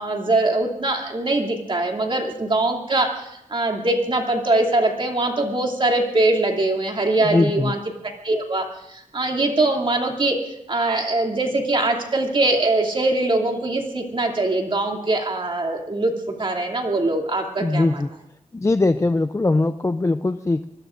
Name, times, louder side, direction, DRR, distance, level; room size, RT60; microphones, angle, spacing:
voice 1, 0.0-7.8 8.2-10.4 10.7-16.1 16.4-18.0, right 2 dB, 40° right, 1 dB, 2.7 m, -22 dB
voice 2, 7.2-7.7 17.6-18.1 18.5-20.6, left 2 dB, 20° left, 10 dB, 0.5 m, -21 dB
25.5 x 20.5 x 2.6 m, 0.84 s
wide cardioid pair, 115°, 13 cm